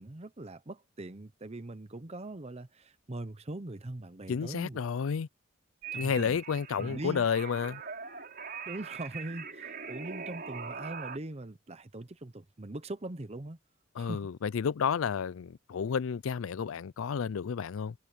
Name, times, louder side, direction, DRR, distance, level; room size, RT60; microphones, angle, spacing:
voice 1, 0.0-4.9 5.9-6.4 6.8-7.3 8.7-13.6 14.0-14.3, right 2 dB, 30° right, 0.8 m, -41 dB
voice 2, 4.3-5.3 5.9-7.8 14.0-17.9, left 6 dB, 75° left, 0.4 m, -31 dB
sound 1, 5.8-11.2, right 6 dB, 50° right, 4.2 m, -42 dB
head